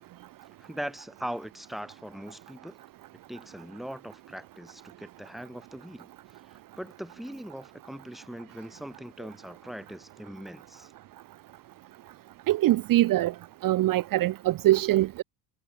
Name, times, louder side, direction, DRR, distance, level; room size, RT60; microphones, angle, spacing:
voice 1, 0.6-2.8 3.3-6.1 6.8-10.9, equal, ahead, 2.1 m, -40 dB
voice 2, 12.5-13.3 13.6-15.2, right 15 dB, 40° right, 1.0 m, -23 dB
cardioid pair, 130°, 49 cm